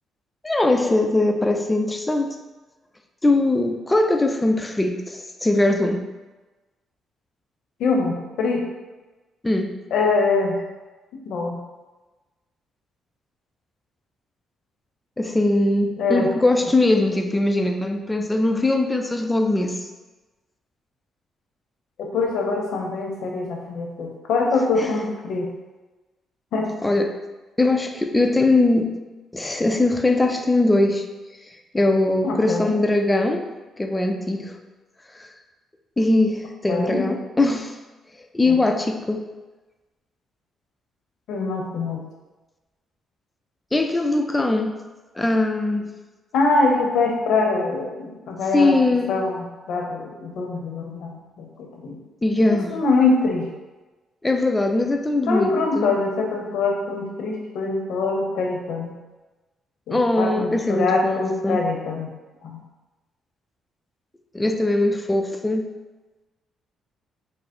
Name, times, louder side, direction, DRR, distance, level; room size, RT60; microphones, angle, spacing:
voice 1, 0.4-2.4 3.2-6.0 9.4-9.7 15.2-19.8 24.8-24.9 26.8-27.2 27.6-28.9 29.3-31.0 31.7-33.5 33.8-34.6 35.2-35.3 36.0-37.8 38.3-39.3 43.7-44.8 45.2-45.9 48.5-49.2 52.2-52.8 54.2-55.9 59.9-61.6 64.3-65.7, left 2 dB, 15° left, 5 dB, 0.5 m, -21 dB
voice 2, 7.8-8.6 9.9-10.6 11.2-11.6 16.0-16.3 22.0-25.5 26.5-26.7 32.2-32.7 36.7-37.0 38.4-38.6 41.3-42.0 46.3-48.7 49.1-52.0 52.5-53.5 55.3-58.9 59.9-62.1 62.4-62.6, left 3 dB, 80° left, 0 dB, 0.8 m, -23 dB
5.2 x 2.1 x 4.3 m, 1.2 s
cardioid pair, 75°, 0 cm